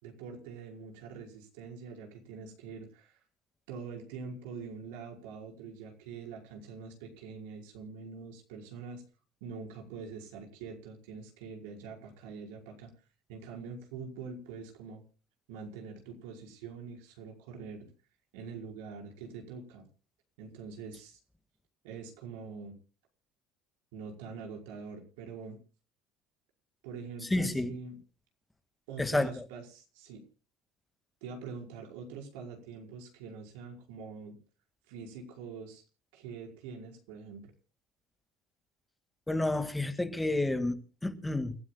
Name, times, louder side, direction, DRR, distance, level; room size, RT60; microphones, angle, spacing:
voice 1, 0.0-3.2 3.7-9.0 9.4-12.9 13.3-15.0 15.5-17.9 18.3-19.9 20.4-21.2 21.8-22.8 23.9-25.6 26.8-28.0 28.9-30.2 31.2-34.4 34.9-35.8 36.1-37.5, right 5 dB, 80° right, 5.1 m, -44 dB
voice 2, 27.3-27.7 29.0-29.4 39.3-41.6, left 2 dB, 10° left, 2.1 m, -30 dB
29.0 x 13.5 x 2.3 m
hypercardioid pair, 70°, 0 cm